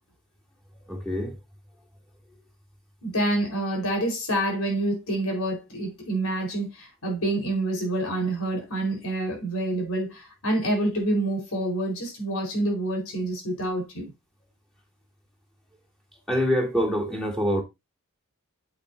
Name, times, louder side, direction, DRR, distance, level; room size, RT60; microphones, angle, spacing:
voice 1, 0.9-1.4 16.3-17.6, equal, ahead, 2.9 m, -25 dB
voice 2, 3.0-14.1, right 1 dB, 80° left, 4.6 m, -27 dB
8.6 x 8.2 x 2.7 m
head